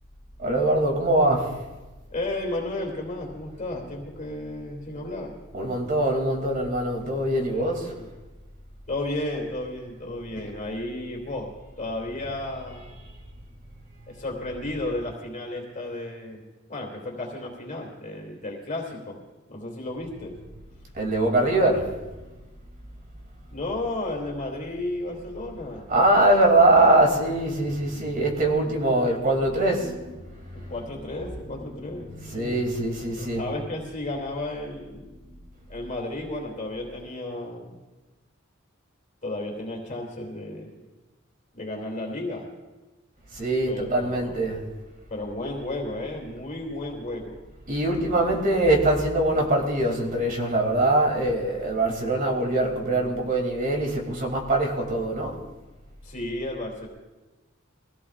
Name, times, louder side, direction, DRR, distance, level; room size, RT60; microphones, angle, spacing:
voice 1, 0.4-1.5 5.5-7.9 20.9-21.9 25.9-30.7 31.7-33.4 43.3-44.6 47.7-55.4, right 2 dB, 45° right, 1 dB, 2.7 m, -23 dB
voice 2, 2.1-5.3 7.6-8.1 8.9-11.5 11.8-13.0 14.1-19.2 19.5-20.4 23.5-25.9 30.5-32.6 33.4-35.1 35.7-37.7 39.2-40.7 41.5-42.5 43.7-44.4 45.1-47.4 56.0-56.9, left 2 dB, 40° left, -1 dB, 2.7 m, -33 dB
23.5 x 16.5 x 2.5 m, 1.2 s
head